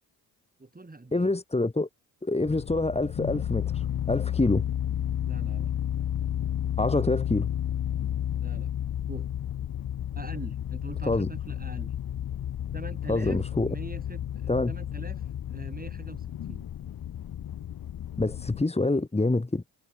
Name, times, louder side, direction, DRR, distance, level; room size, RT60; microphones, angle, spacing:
voice 1, 0.6-1.3 5.2-5.7 6.9-7.1 8.3-8.7 9.1-9.3 10.2-11.9 12.7-16.7, right 2 dB, 20° right, 7.5 m, -43 dB
voice 2, 1.1-1.9 2.2-4.6 6.8-7.5 11.1-11.3 13.1-13.7 14.5-14.7 18.2-19.6, left 2 dB, 15° left, 2.1 m, -26 dB
sound 1, 2.4-18.6, left 10 dB, 55° left, 1.4 m, -32 dB
supercardioid pair, 55°, 42 cm